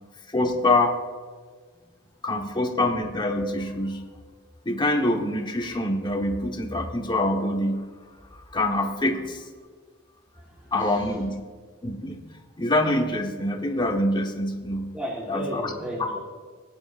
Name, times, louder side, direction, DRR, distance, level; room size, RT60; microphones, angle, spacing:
voice 1, 0.3-0.9 2.2-4.0 4.6-7.9 8.3-9.4 10.7-11.4 11.8-12.2 12.6-14.9 15.3-15.7, left 1 dB, 20° left, 2 dB, 1.1 m, -25 dB
voice 2, 10.4-11.1 14.9-16.2, equal, 5° right, -3 dB, 1.4 m, -34 dB
17.5 x 9.6 x 2.5 m, 1.5 s
head